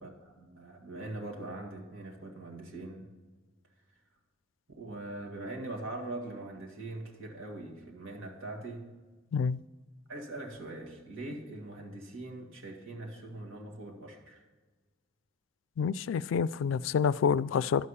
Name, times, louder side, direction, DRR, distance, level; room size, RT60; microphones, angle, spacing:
voice 1, 0.0-3.1 4.7-8.9 10.1-14.4, right 2 dB, 85° right, 2.0 m, -42 dB
voice 2, 15.8-17.9, left 6 dB, 70° left, 0.3 m, -28 dB
11.5 x 6.5 x 5.5 m
head